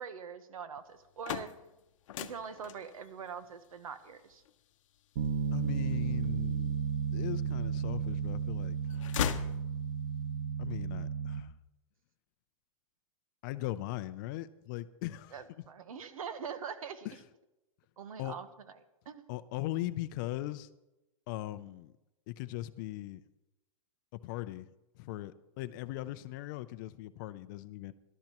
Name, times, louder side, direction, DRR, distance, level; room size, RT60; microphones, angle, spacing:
voice 1, 0.0-1.5 2.2-4.4 15.3-17.1 18.0-18.8 19.0-19.3, right 6 dB, 85° right, 11 dB, 1.1 m, -43 dB
sound 1, 0.9-6.9 7.5-8.3 8.6-10.2, left 10 dB, 65° left, 0.8 m, -40 dB
Bass guitar, 5.2-11.4, right 7 dB, 55° right, 1.1 m, -33 dB
voice 2, 5.5-6.8 7.1-8.8 10.6-11.5 13.4-15.4 17.0-17.2 18.2-18.3 19.3-20.7 21.3-21.9 22.3-23.2 24.2-24.7 25.0-27.9, left 16 dB, 35° left, 13 dB, 0.5 m, -39 dB
19.0 x 12.0 x 3.0 m, 0.96 s
hypercardioid pair, 155°, 18 cm